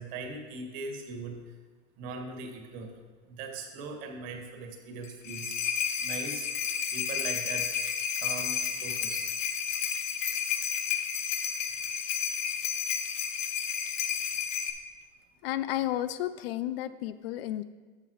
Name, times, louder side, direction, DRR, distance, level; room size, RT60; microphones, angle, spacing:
voice 1, 0.0-1.4 2.0-2.9 3.3-5.6 6.0-7.7 8.2-9.3, right 3 dB, 50° right, 3 dB, 1.8 m, -40 dB
sound 1, 5.0-14.7, left 8 dB, 85° left, 1.1 m, -31 dB
voice 2, 15.4-17.6, left 13 dB, 55° left, 14 dB, 0.4 m, -32 dB
13.0 x 7.1 x 3.1 m, 1.4 s
supercardioid pair, 135°, 36 cm